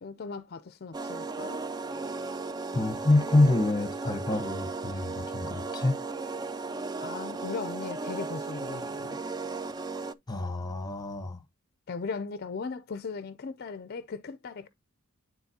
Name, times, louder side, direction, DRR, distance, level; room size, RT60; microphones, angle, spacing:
voice 1, 0.0-1.6 7.0-9.2 11.9-14.7, left 4 dB, 45° left, 0.5 m, -38 dB
sound 1, 0.9-10.1, right 3 dB, 20° right, 0.3 m, -36 dB
voice 2, 2.7-5.9 10.3-11.4, left 2 dB, 20° left, 0.9 m, -26 dB
9.6 x 4.0 x 2.8 m
head